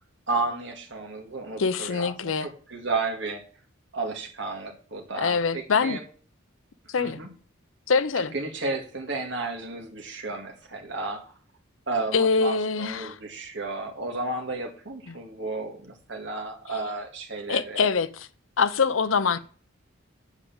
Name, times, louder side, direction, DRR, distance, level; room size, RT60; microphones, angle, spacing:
voice 1, 0.3-2.1 2.4-3.4 3.9-6.0 7.0-7.3 8.3-11.3 11.9-17.9, right 3 dB, 60° right, 2.1 m, -32 dB
voice 2, 1.6-2.5 5.1-6.0 6.9-7.2 7.9-8.3 12.1-13.2 15.1-15.2 17.5-18.3 18.6-19.4, left 5 dB, 80° left, 0.7 m, -24 dB
8.3 x 5.0 x 7.1 m
head